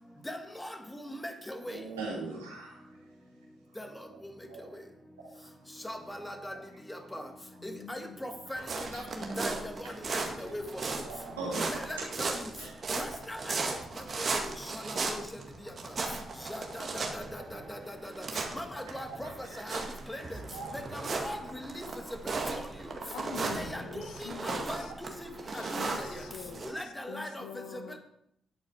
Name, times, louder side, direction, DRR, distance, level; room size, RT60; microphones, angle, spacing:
voice 1, 0.3-0.7 1.1-1.2 1.5-1.8 3.8-3.9 5.8-6.5 6.9-7.2 7.9-8.6 8.9-9.0 9.3-9.7 10.4-10.6 11.7-12.3 13.0-13.5 14.2-14.3 14.9-15.2 16.7-18.1 18.5-19.3 19.6-19.8 20.1-20.2 20.9-21.8 22.2-22.6 23.6-24.8 25.5-26.1 26.6-27.4, left 1 dB, 10° left, 5 dB, 1.9 m, -39 dB
voice 2, 1.7-2.9 4.5-4.8 5.2-5.3 8.3-8.4 8.8-9.0 11.0-12.1 12.6-12.9 16.7-16.8 19.0-19.1 19.5-19.8 20.1-20.2 20.5-20.7, right 3 dB, 85° right, -3 dB, 2.6 m, -40 dB
voice 3, 7.6-8.2 11.3-11.6 20.2-20.7 23.1-24.9 25.5-28.0, left 8 dB, 70° left, 9 dB, 0.8 m, -45 dB
sound 1, 8.6-26.7, right 3 dB, 45° right, 1.8 m, -37 dB
9.8 x 8.4 x 5.0 m, 0.75 s
hypercardioid pair, 40°, 0 cm